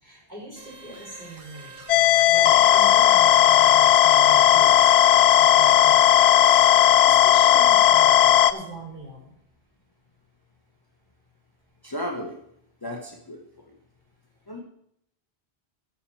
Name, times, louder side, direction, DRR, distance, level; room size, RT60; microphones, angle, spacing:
voice 1, 0.0-1.7 2.3-6.1 6.4-6.7 7.0-9.3, right 2 dB, 45° right, -4 dB, 4.5 m, -41 dB
sound 1, 0.6-7.0, right 3 dB, 80° right, 2.0 m, -43 dB
sound 2, 1.9-8.5, left 10 dB, 85° left, 0.8 m, -16 dB
voice 2, 11.8-12.4 12.8-13.4 13.7-13.8 14.5-14.6, equal, 20° left, 0 dB, 1.1 m, -34 dB
17.5 x 6.2 x 4.2 m, 0.73 s
omnidirectional pair, 1.1 m